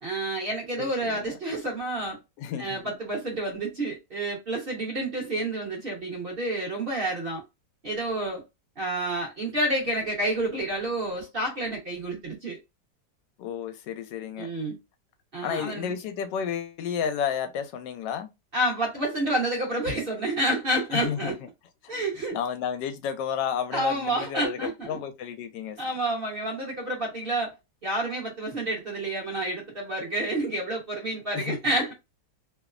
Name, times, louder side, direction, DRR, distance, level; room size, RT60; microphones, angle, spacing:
voice 1, 0.0-2.2 2.6-7.4 7.8-8.4 8.8-12.6 14.4-14.8 15.3-15.9 18.5-21.3 21.9-22.4 23.7-25.0 25.8-27.5 27.8-31.9, right 1 dB, 40° right, 1.0 m, -29 dB
voice 2, 0.8-1.3 2.4-2.9 13.4-14.5 15.4-18.3 20.9-21.3 21.8-21.9 22.3-25.8 31.3-31.6, left 8 dB, 85° left, 1.2 m, -32 dB
3.0 x 2.0 x 2.4 m
omnidirectional pair, 1.9 m